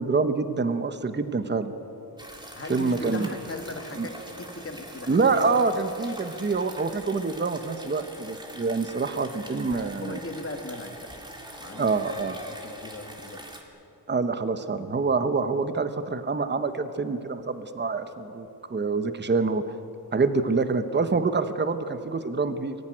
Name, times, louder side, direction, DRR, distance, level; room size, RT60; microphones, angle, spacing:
voice 1, 0.0-1.7 2.7-3.3 4.0-4.1 5.1-10.2 11.8-12.4 14.1-19.6 20.1-22.8, right 4 dB, 25° right, 10 dB, 0.9 m, -26 dB
sound 1, 2.2-13.6, right 1 dB, 10° right, 2.2 m, -43 dB
voice 2, 2.6-5.3 9.6-11.1 11.6-12.0 12.4-13.5, left 2 dB, 35° left, 5 dB, 1.9 m, -39 dB
23.0 x 15.0 x 10.0 m, 2.8 s
wide cardioid pair, 170°, 41 cm